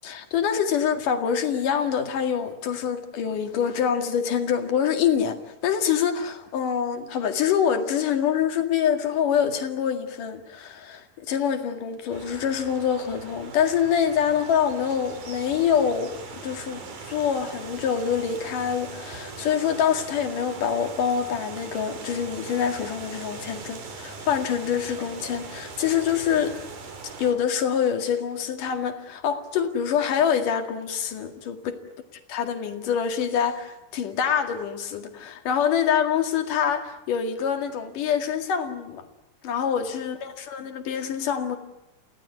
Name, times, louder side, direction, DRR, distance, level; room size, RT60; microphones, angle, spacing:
voice 1, 0.0-5.4 5.6-16.2 16.4-16.8 17.1-26.6 27.2-31.8 32.3-39.0 39.4-41.6, left 8 dB, 90° left, 6 dB, 3.7 m, -25 dB
sound 1, 12.1-27.3, right 4 dB, 90° right, 4.8 m, -40 dB
30.0 x 17.0 x 9.5 m, 0.91 s
omnidirectional pair, 3.6 m